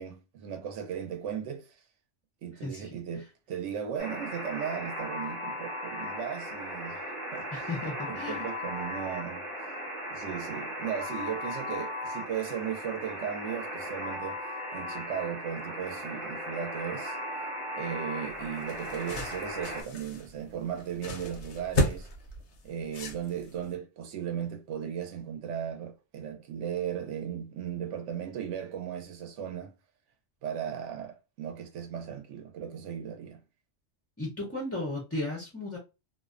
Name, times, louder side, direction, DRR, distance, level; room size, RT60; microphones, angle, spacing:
voice 1, 0.0-1.8 2.4-7.7 8.1-9.5 10.1-14.4 14.7-17.2 17.8-22.1 22.6-29.7 30.4-33.4, right 8 dB, 90° right, 0.9 m, -36 dB
Alarm, 4.0-19.8, equal, 30° right, 0.8 m, -37 dB
voice 2, 7.5-8.5 34.2-35.8, left 2 dB, 25° left, 0.3 m, -35 dB
sound 1, 18.3-23.7, left 1 dB, 75° left, 0.9 m, -34 dB
2.5 x 2.1 x 2.4 m
omnidirectional pair, 1.2 m